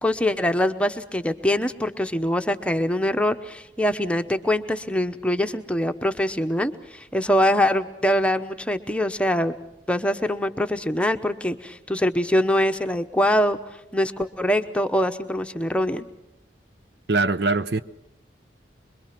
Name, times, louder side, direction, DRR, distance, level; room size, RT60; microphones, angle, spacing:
voice 1, 0.0-9.5 9.9-13.6 13.9-16.1, left 1 dB, 5° left, 0.9 m, -23 dB
voice 2, 17.1-17.8, right 3 dB, 65° right, 0.8 m, -22 dB
25.5 x 22.5 x 6.0 m
head